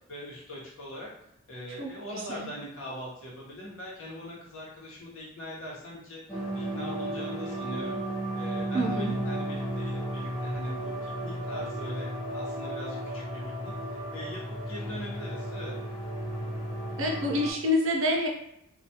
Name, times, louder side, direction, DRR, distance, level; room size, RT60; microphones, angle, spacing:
voice 1, 0.1-1.1 1.5-8.0 8.3-13.7 14.1-14.4 14.7-15.7, equal, 85° left, -5 dB, 0.9 m, -41 dB
voice 2, 1.8-2.5 8.7-9.1 17.0-18.3, left 1 dB, 70° right, 0 dB, 0.6 m, -28 dB
sound 1, 6.3-17.5, right 1 dB, 25° left, 0.8 m, -34 dB
2.3 x 2.3 x 2.8 m, 0.78 s
head